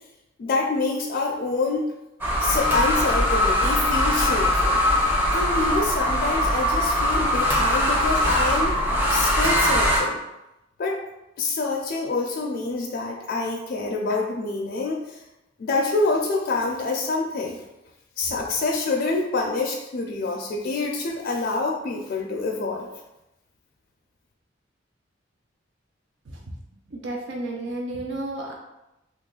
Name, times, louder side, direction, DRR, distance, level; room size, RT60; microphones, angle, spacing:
voice 1, 0.4-1.9 2.4-4.8 5.3-8.7 9.1-10.2 10.8-11.0 11.4-15.2 15.6-17.6 18.2-22.9, left 3 dB, 55° left, -1 dB, 0.4 m, -26 dB
sound 1, 2.2-10.0, left 1 dB, 10° right, 0.6 m, -21 dB
voice 2, 26.9-28.5, right 2 dB, 70° right, 0 dB, 0.6 m, -32 dB
3.0 x 2.4 x 3.7 m, 0.93 s
head